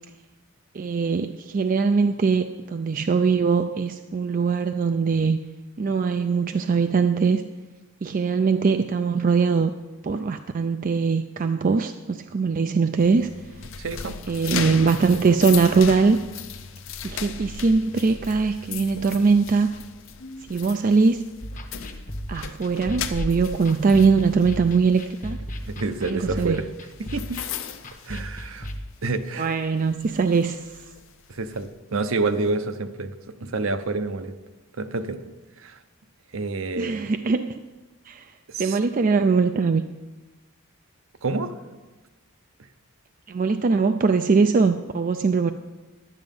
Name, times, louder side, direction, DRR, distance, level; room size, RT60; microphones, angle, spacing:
voice 1, 0.7-5.4 5.8-7.4 8.0-9.7 10.0-13.3 14.3-16.2 17.0-19.7 20.5-21.2 22.3-25.4 26.0-26.6 29.4-30.7 36.8-37.6 38.1-38.3 38.6-39.9 43.3-45.5, right 4 dB, 40° right, 7 dB, 0.3 m, -21 dB
sound 1, 13.0-28.9 29.2-29.5 30.0-31.7, left 6 dB, 60° left, 0.7 m, -36 dB
voice 2, 13.8-14.2 14.7-14.8 25.7-26.7 27.0-27.4 28.1-28.7 29.0-29.5 31.3-33.1 33.4-34.3 34.8-35.2 35.6-35.8 36.3-37.1 38.5-38.8 41.2-41.5, right 3 dB, 65° right, 9 dB, 0.7 m, -28 dB
sound 2, 21.4-28.8, equal, 35° left, 0.9 m, -37 dB
11.5 x 9.5 x 5.3 m, 1.2 s
head